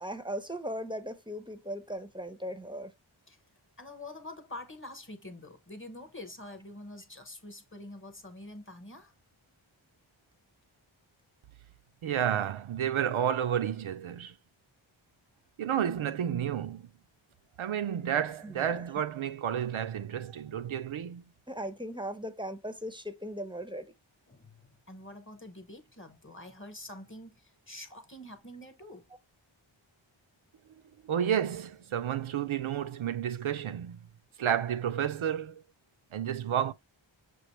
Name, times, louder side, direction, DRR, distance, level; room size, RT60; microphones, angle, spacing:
voice 1, 0.0-2.9 18.4-18.8 21.5-23.9, equal, 10° right, 0.6 m, -38 dB
voice 2, 3.8-9.1 24.3-29.1, left 1 dB, 25° left, 1.0 m, -46 dB
voice 3, 12.0-14.3 15.6-16.9 17.6-21.2 31.0-34.0 34.4-35.6 36.1-36.7, right 9 dB, 75° right, 0.5 m, -31 dB
6.2 x 2.5 x 3.1 m
wide cardioid pair, 45°, 49 cm